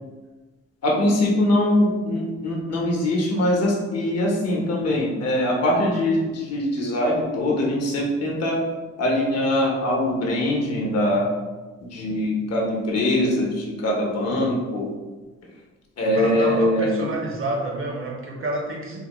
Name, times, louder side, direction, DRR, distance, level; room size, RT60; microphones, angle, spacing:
voice 1, 0.8-8.6 9.0-11.3 11.8-14.9 16.0-16.9, left 1 dB, 55° left, -2 dB, 1.0 m, -22 dB
voice 2, 16.2-19.1, right 2 dB, 45° right, 1 dB, 0.7 m, -28 dB
3.9 x 2.1 x 3.0 m, 1.2 s
cardioid pair, 90°, 30 cm